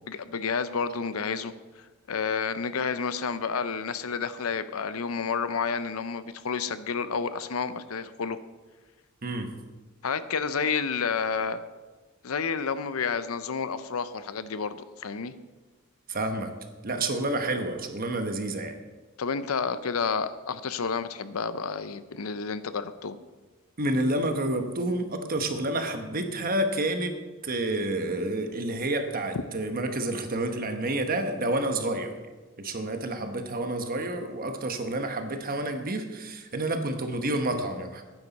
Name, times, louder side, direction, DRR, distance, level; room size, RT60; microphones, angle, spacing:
voice 1, 0.1-1.5 2.1-8.4 10.0-11.6 12.2-15.3 19.2-23.2, left 5 dB, 85° left, 13 dB, 0.6 m, -30 dB
voice 2, 9.2-9.6 16.1-16.5 16.8-18.8 23.8-27.2 27.4-32.1 32.6-38.0, right 1 dB, 45° right, 6 dB, 1.1 m, -29 dB
12.5 x 9.7 x 4.1 m, 1.2 s
head